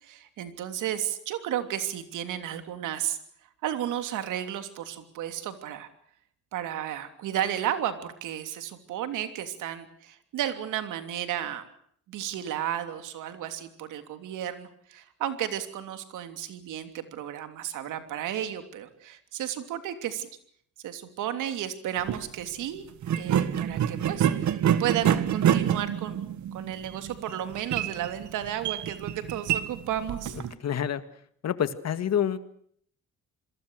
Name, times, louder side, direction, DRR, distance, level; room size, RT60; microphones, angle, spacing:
voice 1, 0.0-3.2 3.6-5.9 6.5-11.7 12.1-20.3 20.8-22.8 23.2-30.4, right 11 dB, 85° right, 9 dB, 3.1 m, -33 dB
sound 1, 22.0-22.2 23.0-30.5, right 9 dB, 70° right, 1.8 m, -27 dB
voice 2, 30.6-31.0 31.4-32.4, left 9 dB, 60° left, 12 dB, 2.0 m, -27 dB
27.5 x 22.0 x 6.5 m, 0.62 s
cardioid pair, 90°, 30 cm